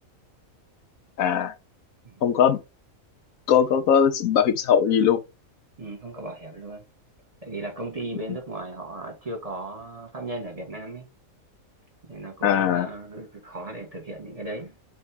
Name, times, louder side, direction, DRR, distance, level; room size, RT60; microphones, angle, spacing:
voice 1, 1.2-1.5 2.2-2.6 3.5-5.2 12.4-12.9, left 8 dB, 80° left, 1.2 m, -20 dB
voice 2, 5.8-6.8 7.4-11.0 12.1-14.7, right 2 dB, 25° right, 1.5 m, -36 dB
4.3 x 3.5 x 3.3 m
omnidirectional pair, 1.4 m